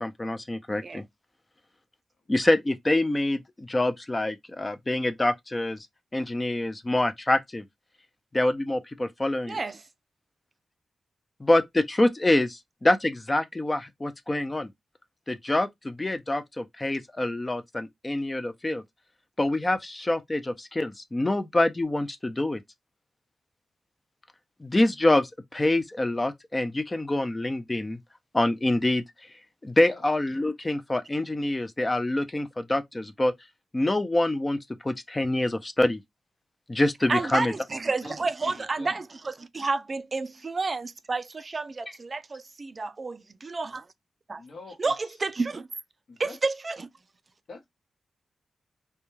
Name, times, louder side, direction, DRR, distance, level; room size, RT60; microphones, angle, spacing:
voice 1, 0.0-1.0 2.3-5.8 6.1-7.6 8.3-9.6 11.4-14.7 15.3-18.8 19.4-22.6 24.6-28.0 28.3-29.0 29.6-33.3 33.7-34.6 34.8-36.0 36.7-37.5, left 1 dB, 25° left, 0.4 m, -26 dB
voice 2, 9.5-9.8 37.1-43.9 44.3-44.4 44.8-45.7 46.2-46.9, right 3 dB, 45° right, 0.3 m, -30 dB
voice 3, 37.1-37.5 38.0-38.1 38.4-39.0 44.4-45.1 46.1-46.4 47.5-47.7, left 3 dB, 65° left, 0.9 m, -45 dB
2.2 x 2.2 x 3.0 m
cardioid pair, 65°, 0 cm